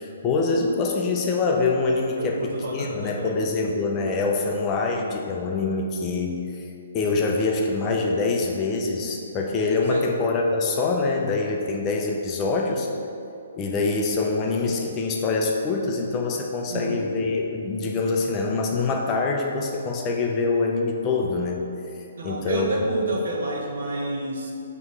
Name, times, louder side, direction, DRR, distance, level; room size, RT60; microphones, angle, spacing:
voice 1, 0.0-6.7 6.9-12.9 13.6-21.6 22.2-22.7, left 3 dB, 20° left, 0 dB, 0.4 m, -25 dB
voice 2, 2.2-3.4 9.9-10.0 16.7-17.0 22.2-24.5, right 1 dB, 65° right, -1 dB, 1.0 m, -29 dB
6.1 x 3.0 x 5.2 m, 2.6 s
hypercardioid pair, 170°, 0 cm